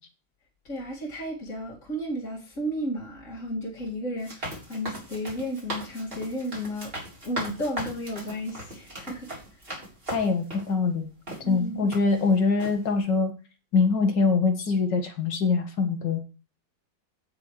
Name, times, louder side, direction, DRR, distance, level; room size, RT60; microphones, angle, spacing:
voice 1, 0.6-6.9 7.2-9.6 11.4-11.9, equal, 40° left, 2.7 m, -33 dB
sound 1, 4.2-10.7 11.3-11.4 11.9-12.3 12.6-12.8, equal, 25° right, 4.0 m, -38 dB
voice 2, 10.1-11.1 11.5-13.3 13.7-16.2, left 4 dB, 65° left, 2.3 m, -23 dB
16.5 x 6.2 x 3.2 m
omnidirectional pair, 2.1 m